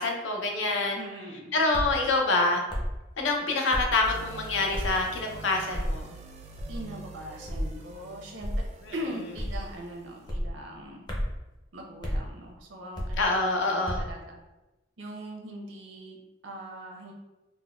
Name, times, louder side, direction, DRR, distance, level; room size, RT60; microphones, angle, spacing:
voice 1, 0.0-1.0 1.5-2.6 3.2-6.1 8.9-9.0 13.2-14.0, left 3 dB, 80° left, 2 dB, 0.6 m, -26 dB
voice 2, 0.9-1.5 6.7-8.5 8.9-11.0 11.7-14.4 15.0-17.1, right 1 dB, 80° right, 0 dB, 0.6 m, -41 dB
sound 1, 1.7-2.0 2.7-3.0 3.7-4.0 4.7-5.0 5.7-6.0 6.6-6.9 7.5-7.7 8.4-8.7 9.4-9.7 10.3-10.5 11.1-11.4 12.0-12.2 12.9-13.3 13.9-14.1, equal, 20° left, 0.5 m, -31 dB
sound 2, 4.0-10.3, right 2 dB, 35° right, 0.3 m, -45 dB
3.7 x 2.1 x 2.3 m, 1.0 s
head